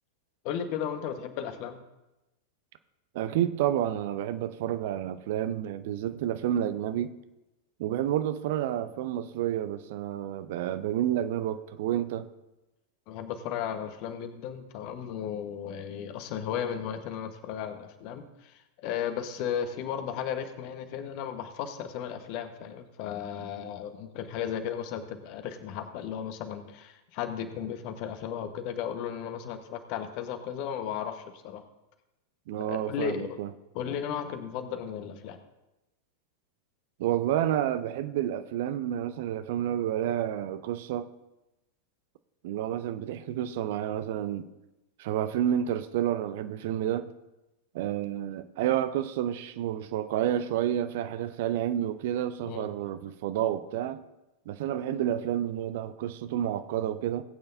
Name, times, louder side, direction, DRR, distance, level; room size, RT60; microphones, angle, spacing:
voice 1, 0.4-1.8 13.1-31.6 32.7-33.3 33.7-35.4 52.5-52.7, left 8 dB, 45° left, 1.2 m, -35 dB
voice 2, 3.1-7.1 7.8-12.3 32.5-33.5 37.0-41.1 42.4-44.5 45.0-47.1 47.7-54.0 54.5-57.2, right 11 dB, 50° right, 0.7 m, -30 dB
19.0 x 8.8 x 2.7 m
figure-of-eight pair, 90°, 0 cm